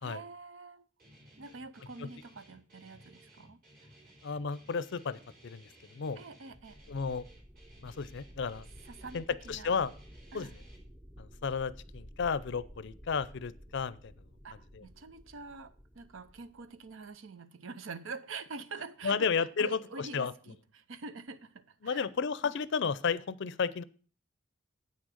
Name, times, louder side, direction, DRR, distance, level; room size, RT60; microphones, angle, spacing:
voice 1, 0.0-0.9 1.4-3.6 6.2-6.8 8.9-9.7 10.3-10.5 14.4-19.3 19.6-22.1 22.4-22.5, right 4 dB, 75° right, 0.7 m, -46 dB
Guitar, 1.0-10.8, right 1 dB, 50° right, 3.4 m, -58 dB
voice 2, 4.2-6.2 6.9-7.2 7.8-8.6 9.1-9.9 10.3-10.5 11.2-14.1 14.7-14.8 19.0-20.3 21.8-23.8, left 5 dB, 60° left, 0.5 m, -33 dB
sound 1, 6.5-17.1, equal, 10° right, 0.7 m, -53 dB
8.9 x 6.3 x 6.4 m
head